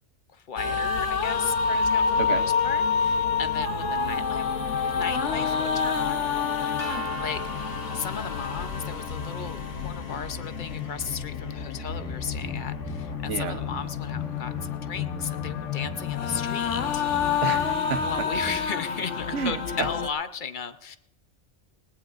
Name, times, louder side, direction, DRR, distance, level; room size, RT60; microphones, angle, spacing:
voice 1, 0.3-6.3 7.1-17.1 18.0-21.0, left 6 dB, 50° left, 10 dB, 0.7 m, -36 dB
sound 1, 0.6-20.1, left 6 dB, 85° left, 1.2 m, -28 dB
sound 2, 6.8-12.7, right 3 dB, 65° left, 5.1 m, -42 dB
sound 3, 11.9-18.6, right 3 dB, 5° left, 0.5 m, -43 dB
voice 2, 13.3-13.6 17.4-18.3 19.3-19.9, right 7 dB, 85° right, 11 dB, 1.1 m, -30 dB
19.0 x 19.0 x 2.4 m, 0.83 s
omnidirectional pair, 1.2 m